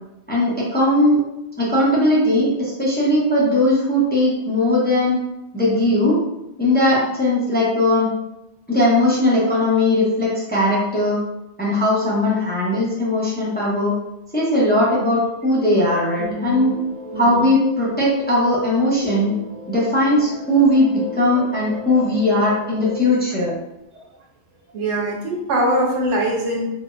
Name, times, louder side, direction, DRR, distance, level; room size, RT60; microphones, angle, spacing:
voice 1, 0.3-1.2 1.6-5.2 5.5-6.2 6.6-8.1 8.7-11.2 11.6-13.9 14.3-16.7 17.2-19.3 19.7-23.5, left 1 dB, 10° left, -7 dB, 0.6 m, -18 dB
sound 1, 16.2-23.1, left 2 dB, 50° right, 0.5 m, -35 dB
voice 2, 16.2-16.8 17.1-17.5 23.9-24.0 24.7-26.7, right 1 dB, 85° right, 0 dB, 1.0 m, -23 dB
4.0 x 2.2 x 2.4 m, 0.91 s
omnidirectional pair, 1.2 m